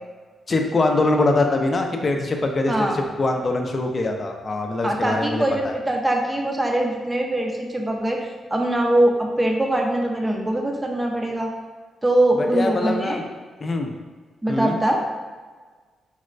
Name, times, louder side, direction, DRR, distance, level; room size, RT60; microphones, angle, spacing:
voice 1, 0.5-5.8 12.4-13.2 13.6-13.9 14.5-14.8, left 2 dB, 35° left, 3 dB, 0.4 m, -23 dB
voice 2, 4.8-11.5 12.0-13.2 14.4-15.0, right 1 dB, 15° right, 1 dB, 0.5 m, -22 dB
4.1 x 2.1 x 2.4 m, 1.4 s
cardioid pair, 90°, 0 cm